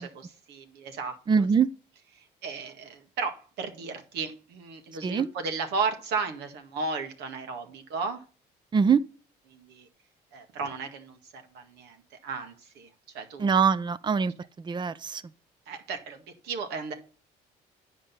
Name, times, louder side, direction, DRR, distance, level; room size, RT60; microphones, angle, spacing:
voice 1, 0.0-1.5 2.2-8.2 9.5-9.9 10.3-12.0 12.2-12.9 13.1-13.5 15.7-16.9, right 4 dB, 80° right, 1.9 m, -35 dB
voice 2, 1.3-1.7 5.0-5.3 8.7-9.0 13.4-14.3 14.6-15.2, right 6 dB, 25° right, 0.6 m, -23 dB
10.0 x 5.1 x 5.7 m
cardioid pair, 110°, 17 cm